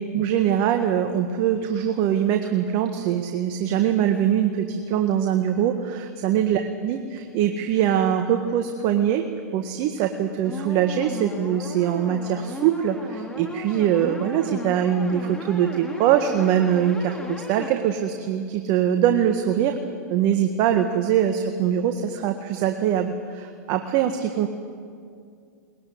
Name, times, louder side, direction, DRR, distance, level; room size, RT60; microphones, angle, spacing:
voice 1, 0.1-9.3 9.5-19.8 20.1-24.5, right 9 dB, 45° right, 6 dB, 1.7 m, -23 dB
sound 1, 10.4-17.7, left 1 dB, 10° left, 3.2 m, -36 dB
21.5 x 20.0 x 9.6 m, 2.2 s
hypercardioid pair, 115°, 10 cm